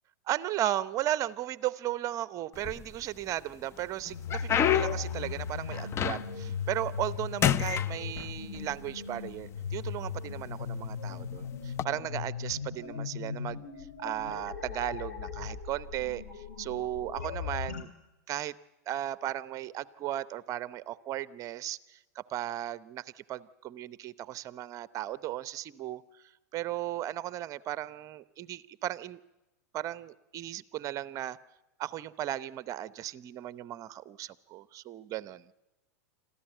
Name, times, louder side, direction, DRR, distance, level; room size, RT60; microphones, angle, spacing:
voice 1, 0.3-13.6 14.0-17.9 18.3-18.5 18.9-26.0 26.5-29.2 29.7-31.4 31.8-35.5, right 13 dB, 40° right, 17 dB, 0.8 m, -36 dB
sound 1, 2.5-3.3 3.8-6.5 6.9-7.2 7.4-8.6 9.5-9.6 10.3-10.5 11.6-11.8, left 10 dB, 30° left, 0.7 m, -29 dB
sound 2, 4.1-17.8, left 6 dB, 85° left, 3.2 m, -38 dB
26.0 x 14.5 x 9.1 m, 1.0 s
hypercardioid pair, 105°, 9 cm